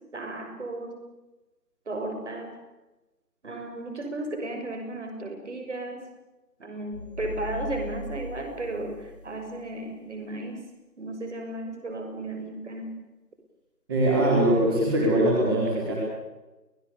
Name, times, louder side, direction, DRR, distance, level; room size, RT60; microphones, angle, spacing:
voice 1, 0.1-1.0 1.9-2.5 3.4-6.0 6.6-8.9 9.2-10.6 11.0-12.9, right 2 dB, 45° right, 4 dB, 6.5 m, -34 dB
sound 1, 6.9-9.6, left 1 dB, 30° left, 1.9 m, -39 dB
voice 2, 13.9-15.9, right 1 dB, 15° right, -4 dB, 4.5 m, -22 dB
29.0 x 19.0 x 7.1 m, 1.1 s
figure-of-eight pair, 165°, 48 cm